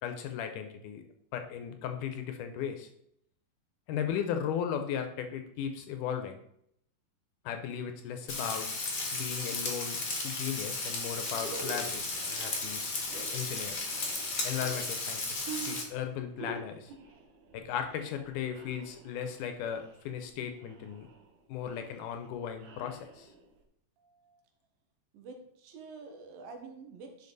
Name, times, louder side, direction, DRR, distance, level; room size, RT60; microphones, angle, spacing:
voice 1, 0.0-1.0 1.3-2.9 3.9-6.4 7.5-8.7 9.1-13.0 13.3-13.9 14.4-16.9 17.5-21.1 21.5-23.3, left 8 dB, 75° left, 6 dB, 2.0 m, -36 dB
Frying (food), 8.3-15.8, left 3 dB, 50° left, 0.9 m, -35 dB
sound 1, 11.3-23.6, right 4 dB, 65° right, 2.6 m, -48 dB
voice 2, 24.0-24.4 25.1-27.3, right 4 dB, 85° right, 3 dB, 3.0 m, -48 dB
10.5 x 5.0 x 4.0 m, 0.73 s
omnidirectional pair, 4.0 m